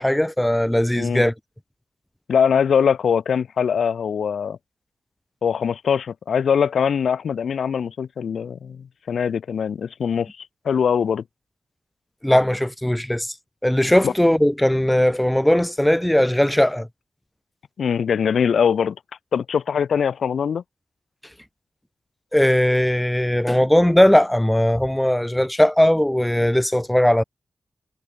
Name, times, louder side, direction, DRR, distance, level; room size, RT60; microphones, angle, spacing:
voice 1, 0.0-1.3 12.2-13.3 13.6-16.9 22.3-27.2, left 1 dB, 5° left, 0.5 m, -18 dB
voice 2, 2.3-4.6 5.4-11.2 14.0-14.1 17.8-19.0 19.3-20.6, left 7 dB, 80° left, 2.4 m, -22 dB
wide cardioid pair, 135°, 0 cm